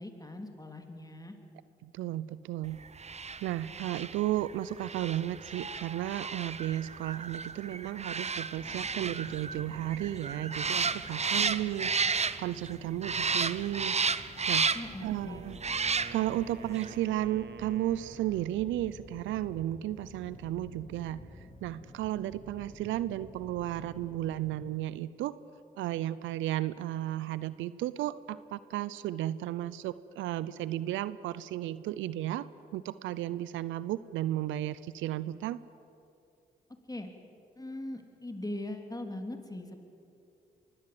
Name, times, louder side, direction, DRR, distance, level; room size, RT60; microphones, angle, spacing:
voice 1, 0.0-1.3 14.7-15.5 36.9-37.1 37.6-39.8, left 1 dB, 20° left, 5 dB, 3.3 m, -40 dB
voice 2, 1.8-2.8 3.4-14.0 14.5-14.7 15.0-15.6 16.1-25.4 25.8-32.5 32.7-35.6, right 13 dB, 80° right, 17 dB, 0.6 m, -34 dB
sound 1, 3.0-12.7 13.0-15.0 15.6-16.4 16.8-16.9, right 5 dB, 35° right, 0.9 m, -33 dB
sound 2, 8.5-24.5, left 2 dB, 40° left, 3.4 m, -51 dB
Wind instrument woodwind instrument, 14.8-18.7, right 5 dB, 60° right, 1.1 m, -49 dB
22.5 x 17.0 x 7.8 m, 2.6 s
hypercardioid pair, 40°, 20 cm